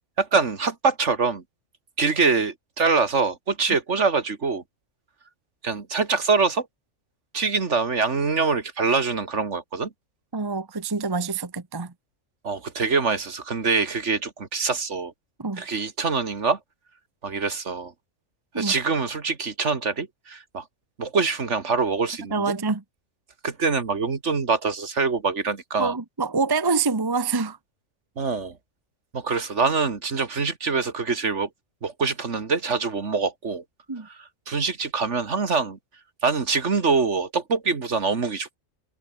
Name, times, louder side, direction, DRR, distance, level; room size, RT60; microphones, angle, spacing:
voice 1, 0.2-1.4 2.0-4.6 5.6-6.7 7.3-9.9 12.4-15.1 15.6-16.6 17.2-17.9 18.6-20.6 21.0-22.5 23.4-25.9 28.2-28.6 29.1-31.5 31.8-33.6 34.5-35.8 36.2-38.6, right 4 dB, 60° right, 2.2 m, -24 dB
voice 2, 10.3-11.9 15.4-15.6 18.5-18.7 22.3-22.8 25.8-27.6 33.9-34.1, right 4 dB, 20° right, 1.0 m, -26 dB
omnidirectional pair, 1.4 m